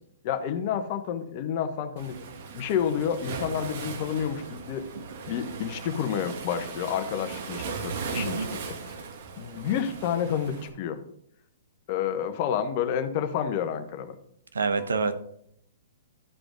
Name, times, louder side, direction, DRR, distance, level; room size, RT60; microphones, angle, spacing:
voice 1, 0.2-2.2 2.5-4.8 5.2-8.7 9.4-11.0 11.9-14.1, left 8 dB, 45° left, 9 dB, 1.1 m, -29 dB
Waves surf, 2.0-10.7, right 5 dB, 55° right, 1.6 m, -38 dB
voice 2, 8.1-8.5 14.5-15.1, right 4 dB, 80° right, 10 dB, 0.9 m, -27 dB
13.5 x 5.0 x 3.9 m, 0.69 s
hypercardioid pair, 120°, 0 cm